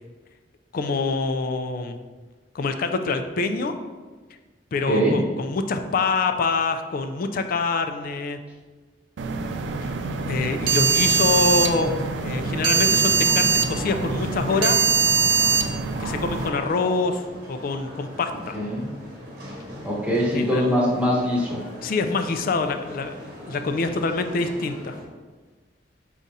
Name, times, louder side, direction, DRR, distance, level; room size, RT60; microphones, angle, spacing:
voice 1, 0.7-2.0 2.5-3.7 4.7-8.4 9.8-9.9 10.3-12.0 12.2-14.8 16.0-17.2 17.5-18.6 20.3-20.7 21.8-23.2 23.5-25.0, left 4 dB, 50° left, 7 dB, 0.3 m, -25 dB
voice 2, 4.9-5.2 18.5-18.8 19.8-21.6, equal, 10° right, -6 dB, 1.0 m, -22 dB
sound 1, 9.2-16.5, right 6 dB, 80° right, 0.4 m, -22 dB
sound 2, 11.8-25.0, equal, 55° right, 1.0 m, -40 dB
5.2 x 2.4 x 4.0 m, 1.3 s
head